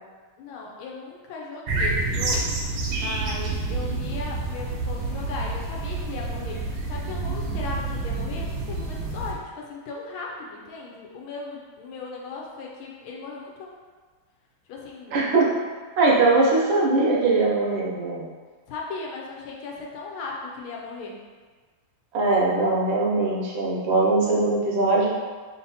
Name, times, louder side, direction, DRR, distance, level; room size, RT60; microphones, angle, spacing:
voice 1, 0.4-13.7 14.7-15.2 18.7-21.2, left 3 dB, 75° left, -2 dB, 1.4 m, -37 dB
sound 1, 1.7-9.3, right 3 dB, 90° right, 1.6 m, -28 dB
voice 2, 15.1-15.5 16.0-18.3 22.1-25.1, right 3 dB, 70° right, -4 dB, 1.5 m, -21 dB
3.7 x 2.8 x 4.1 m, 1.4 s
omnidirectional pair, 2.4 m